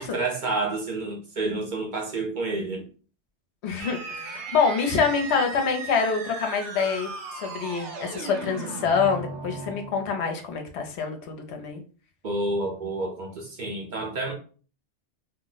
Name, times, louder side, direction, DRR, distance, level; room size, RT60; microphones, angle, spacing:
voice 1, 0.0-2.8 12.2-14.3, right 2 dB, 50° right, 0.7 m, -29 dB
voice 2, 3.6-7.1 7.3-11.8, left 5 dB, 75° left, 0.9 m, -26 dB
sound 1, 3.8-10.3, right 3 dB, 80° right, 1.0 m, -37 dB
2.7 x 2.0 x 3.8 m
omnidirectional pair, 1.2 m